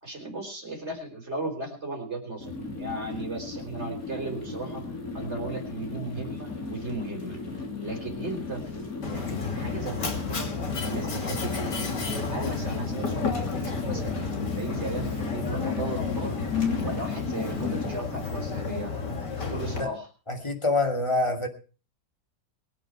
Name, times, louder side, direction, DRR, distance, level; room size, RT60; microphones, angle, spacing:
voice 1, 0.0-4.9 5.1-10.5 10.8-12.0 12.3-14.2 14.6-16.4 16.8-18.9 19.5-20.1, right 2 dB, 40° right, 2 dB, 4.7 m, -36 dB
sound 1, 2.4-17.9, left 3 dB, 55° left, 3.5 m, -35 dB
Mechanisms, 9.0-19.8, left 5 dB, 90° left, 3.1 m, -31 dB
voice 2, 20.3-21.5, left 2 dB, 15° left, 4 dB, 2.4 m, -26 dB
22.5 x 9.2 x 4.7 m, 0.36 s
omnidirectional pair, 1.8 m